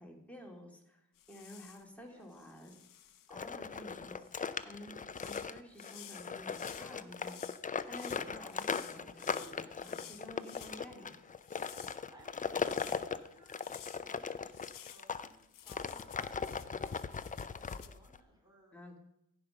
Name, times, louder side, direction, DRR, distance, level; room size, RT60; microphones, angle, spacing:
voice 1, 0.0-2.7 3.3-4.3 4.6-7.4 7.9-11.1 18.7-19.0, equal, 5° left, 0 dB, 2.5 m, -51 dB
sound 1, 1.2-1.9 2.3-3.4 4.2-4.5 5.1-10.8 11.3-13.1 13.5-14.1 14.5-17.9, left 11 dB, 75° left, 0.7 m, -54 dB
voice 2, 2.1-2.5 11.7-13.6 13.9-16.6 17.6-18.7, right 1 dB, 10° right, -2 dB, 4.2 m, -61 dB
sound 2, 3.3-15.3 15.7-18.2, left 5 dB, 25° left, 0.5 m, -39 dB
15.5 x 5.3 x 5.7 m, 0.79 s
cardioid pair, 95°, 33 cm